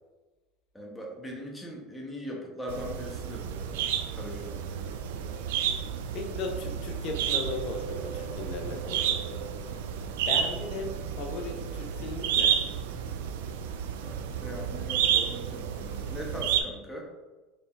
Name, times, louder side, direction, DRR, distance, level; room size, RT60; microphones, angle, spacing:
voice 1, 0.7-4.9 14.0-17.1, equal, 5° left, -2 dB, 0.8 m, -40 dB
sound 1, 2.7-16.6, right 8 dB, 85° right, 0.3 m, -31 dB
voice 2, 6.1-9.4 10.3-12.6, left 3 dB, 55° left, 3 dB, 0.7 m, -37 dB
4.2 x 3.4 x 2.4 m, 1.2 s
supercardioid pair, 110°, 0 cm